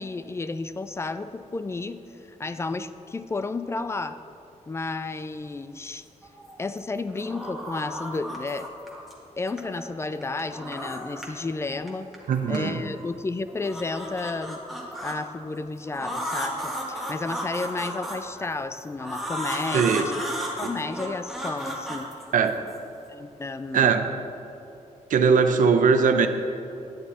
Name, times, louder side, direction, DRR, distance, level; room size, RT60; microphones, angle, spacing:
voice 1, 0.0-4.2 4.7-6.1 6.6-8.7 9.4-12.1 12.5-14.6 15.0-20.1 20.6-22.1 23.1-24.0, left 3 dB, 20° left, 11 dB, 0.3 m, -32 dB
sound 1, 6.2-6.8 7.1-9.1 9.5-11.4 11.7-13.0 13.5-15.2 15.9-18.5 19.0-22.8, equal, ahead, 1.6 m, -34 dB
voice 2, 12.3-12.8 19.7-20.1 22.3-22.5 23.7-24.1 25.1-26.3, right 5 dB, 85° right, 7 dB, 0.7 m, -20 dB
11.5 x 9.8 x 4.2 m, 2.8 s
wide cardioid pair, 170°, 13 cm